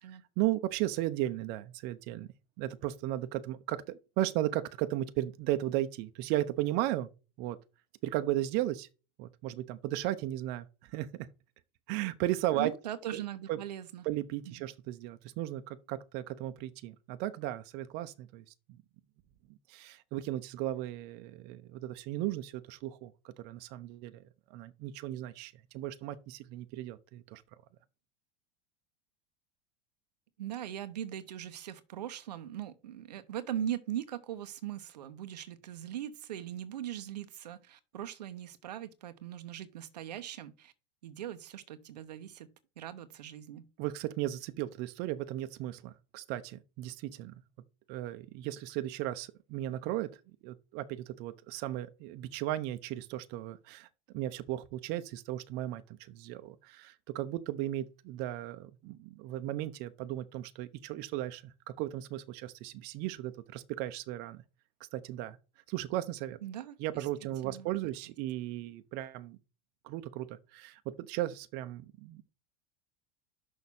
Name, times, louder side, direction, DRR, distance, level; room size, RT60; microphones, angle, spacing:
voice 1, 0.4-2.3 2.6-7.1 7.4-7.6 8.0-8.9 9.2-11.3 11.9-12.7 13.1-13.2 13.5-13.6 14.0-18.4 19.7-24.2 24.5-27.4 43.8-47.3 47.9-50.1 50.4-53.9 54.1-64.4 64.9-65.4 65.7-66.4 66.8-69.4 69.8-72.3, right 14 dB, 55° right, 0.8 m, -35 dB
voice 2, 12.5-14.1 14.4-14.6 30.4-40.7 41.0-43.7 66.4-67.1 67.4-67.7, right 11 dB, 85° right, 0.9 m, -40 dB
6.4 x 5.6 x 5.4 m
hypercardioid pair, 95°, 20 cm